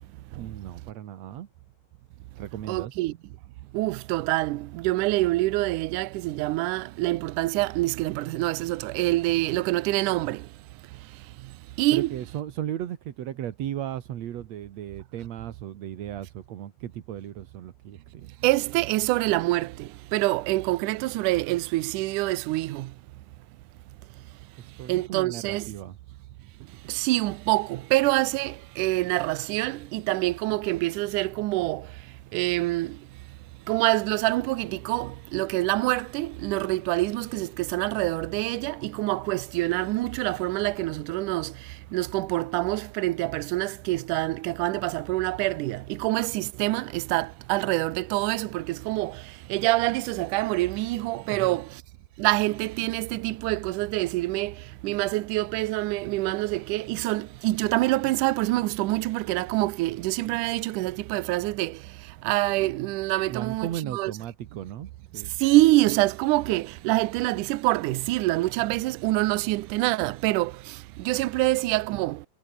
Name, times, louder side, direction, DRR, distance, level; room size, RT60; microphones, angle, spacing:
voice 1, 0.4-1.5 2.4-3.0 11.9-18.3 24.6-26.0 51.3-51.6 60.3-60.4 63.3-65.3, right 11 dB, 60° right, 2.2 m, -36 dB
voice 2, 2.7-3.2 3.7-10.5 11.8-12.1 18.4-22.9 24.9-25.7 26.9-31.9 32.3-33.0 33.7-51.8 52.2-61.8 62.2-64.1 65.4-72.2, right 19 dB, 75° right, 2.0 m, -26 dB
omnidirectional pair, 4.2 m